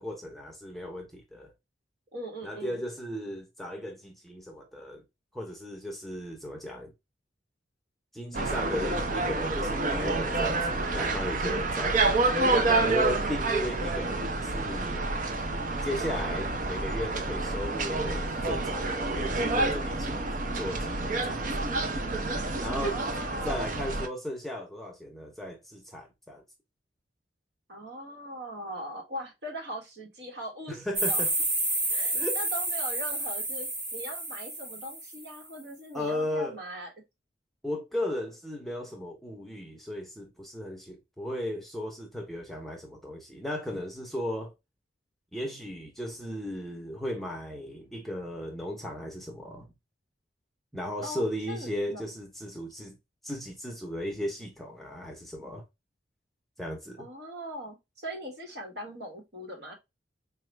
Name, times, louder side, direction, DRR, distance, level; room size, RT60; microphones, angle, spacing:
voice 1, 0.0-1.5 2.4-5.0 5.3-6.9 8.1-12.0 12.8-15.1 15.8-20.3 20.5-21.8 22.6-23.0 23.4-26.4 30.7-31.3 32.1-32.4 35.9-36.6 37.6-44.5 45.3-49.7 50.7-53.0 53.2-55.6 56.6-57.1, left 1 dB, ahead, 0.7 m, -36 dB
voice 2, 2.1-2.8 22.7-23.9 27.7-31.3 31.9-36.9 51.0-52.1 57.0-59.8, equal, 60° right, 1.2 m, -40 dB
sound 1, 8.3-24.1, right 2 dB, 45° right, 0.5 m, -28 dB
sound 2, 31.0-35.3, right 2 dB, 25° right, 1.2 m, -30 dB
4.2 x 2.4 x 3.1 m
head